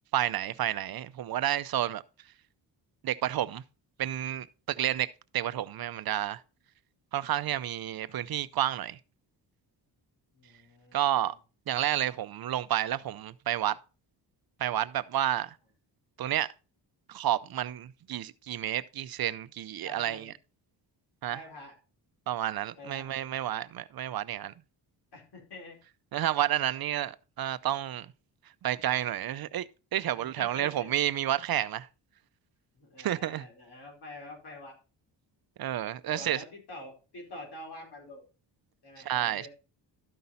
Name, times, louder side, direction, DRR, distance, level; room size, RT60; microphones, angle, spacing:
voice 1, 0.1-2.0 3.0-3.6 4.0-6.4 7.1-9.0 10.9-11.3 11.7-13.8 14.6-15.5 16.2-16.5 17.1-20.3 21.2-21.4 22.3-24.5 26.1-28.1 28.6-31.9 33.0-33.4 35.6-36.4 39.0-39.5, right 12 dB, 55° right, 0.6 m, -30 dB
voice 2, 10.3-11.3 19.8-20.3 21.3-21.7 22.8-23.2 24.4-24.5 25.1-25.8 30.2-31.0 32.7-34.7 36.1-38.2 38.8-39.5, left 2 dB, 60° left, 4.7 m, -46 dB
13.0 x 5.5 x 4.0 m
cardioid pair, 90°, 45 cm